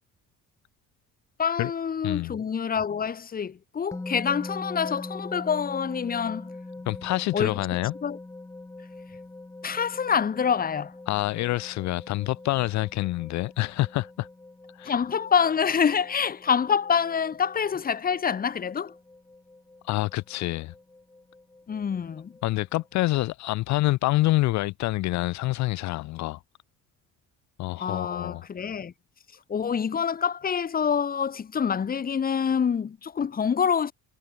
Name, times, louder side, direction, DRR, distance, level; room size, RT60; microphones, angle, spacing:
voice 1, 1.4-6.5 7.3-7.6 8.0-8.2 9.6-10.9 14.9-18.9 21.7-22.3 27.8-28.9 29.5-33.9, left 7 dB, 25° left, 1.7 m, -26 dB
sound 1, 3.9-23.3, left 2 dB, 10° left, 2.4 m, -43 dB
voice 2, 6.9-7.9 11.1-14.3 14.8-15.0 19.8-20.7 22.4-26.4 27.6-28.4, left 18 dB, 55° left, 0.5 m, -27 dB
cardioid pair, 160°, 34 cm